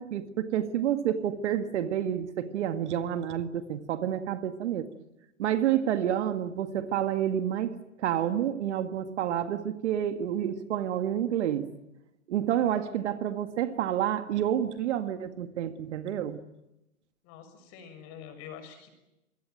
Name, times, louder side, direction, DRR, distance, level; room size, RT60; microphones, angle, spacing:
voice 1, 0.0-4.9 5.4-11.7 12.3-16.4, right 10 dB, 50° right, 8 dB, 2.0 m, -29 dB
voice 2, 17.2-18.9, left 8 dB, 35° left, 8 dB, 6.3 m, -46 dB
26.0 x 21.5 x 9.3 m, 0.94 s
hypercardioid pair, 140°, 43 cm